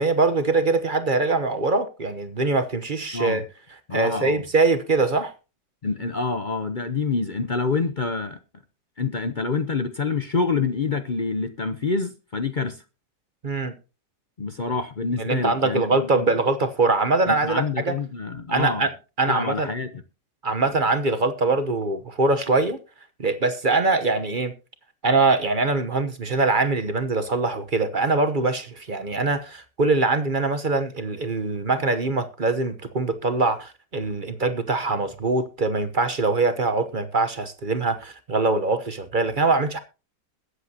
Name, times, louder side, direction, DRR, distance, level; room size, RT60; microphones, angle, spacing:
voice 1, 0.0-3.4 3.9-5.3 13.4-13.7 15.2-17.9 18.5-18.9 19.2-19.7 20.4-22.8 23.2-24.5 25.0-39.8, right 3 dB, 35° right, 0.9 m, -23 dB
voice 2, 3.9-4.4 5.8-8.4 9.0-12.8 14.4-16.3 17.3-18.8 19.3-20.0, left 4 dB, 45° left, 0.6 m, -27 dB
21.5 x 8.1 x 2.8 m
omnidirectional pair, 1.9 m